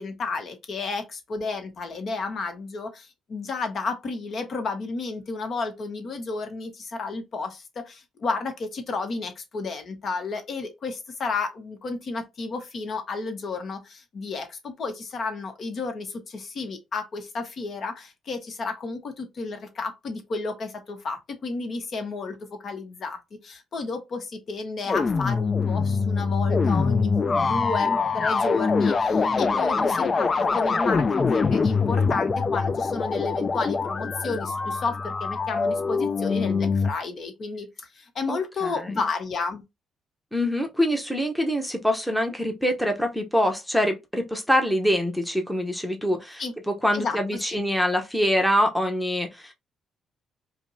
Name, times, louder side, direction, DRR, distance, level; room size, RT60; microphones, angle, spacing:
voice 1, 0.0-39.6 46.4-46.5 46.9-47.2 47.5-47.6, left 4 dB, 55° left, 0.9 m, -32 dB
sound 1, 24.9-36.9, left 4 dB, 35° left, 0.3 m, -24 dB
voice 2, 38.3-38.9 40.3-49.5, equal, ahead, 0.8 m, -25 dB
5.0 x 2.1 x 2.6 m
cardioid pair, 90°, 0 cm